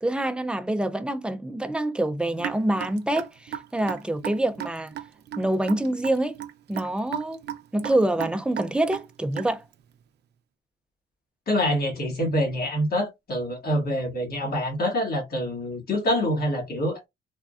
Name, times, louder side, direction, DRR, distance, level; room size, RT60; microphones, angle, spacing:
voice 1, 0.0-4.9 5.4-6.4 6.7-7.4 7.7-9.6, right 1 dB, 5° right, 0.4 m, -26 dB
Raindrop / Drip, 2.4-9.7, right 11 dB, 60° right, 0.5 m, -35 dB
voice 2, 11.5-17.1, equal, 50° left, 1.5 m, -26 dB
3.5 x 2.2 x 2.4 m
cardioid pair, 90°, 20 cm